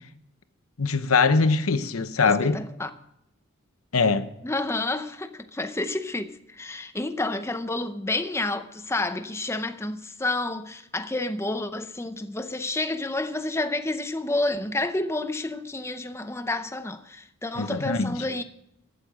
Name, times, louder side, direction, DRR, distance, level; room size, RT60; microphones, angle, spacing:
voice 1, 0.8-2.6 3.9-4.3 17.6-18.1, left 4 dB, 85° left, 0.9 m, -22 dB
voice 2, 2.3-2.9 4.4-18.4, left 2 dB, 10° left, 0.6 m, -30 dB
14.5 x 8.6 x 6.2 m
head